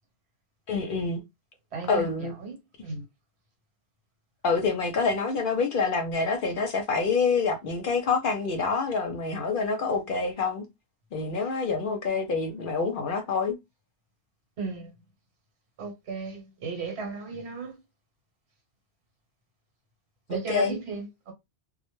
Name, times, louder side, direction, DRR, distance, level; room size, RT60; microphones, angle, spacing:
voice 1, 0.7-1.2 1.9-2.3 4.4-10.7 11.1-13.6 20.3-20.8, left 4 dB, 60° left, 0.7 m, -27 dB
voice 2, 1.7-2.1 2.4-3.0 14.6-14.9 15.8-17.8 20.3-21.3, right 4 dB, 75° right, 1.1 m, -35 dB
2.1 x 2.1 x 3.0 m
omnidirectional pair, 1.1 m